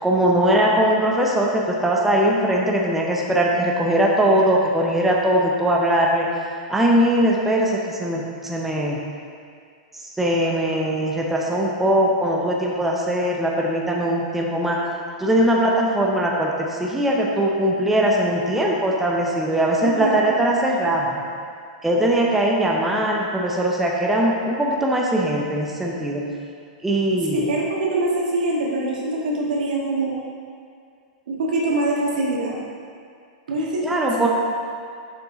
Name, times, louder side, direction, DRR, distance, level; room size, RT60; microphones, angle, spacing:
voice 1, 0.0-6.3 6.7-9.0 10.0-14.8 15.2-21.2 21.8-26.2 26.8-27.4 33.8-34.3, right 1 dB, 5° right, -2 dB, 0.6 m, -20 dB
voice 2, 19.8-20.4 27.3-30.2 31.3-32.5 33.5-33.9 34.2-34.3, right 2 dB, 85° right, -4 dB, 1.9 m, -24 dB
7.1 x 5.9 x 3.9 m, 2.2 s
supercardioid pair, 155°, 4 cm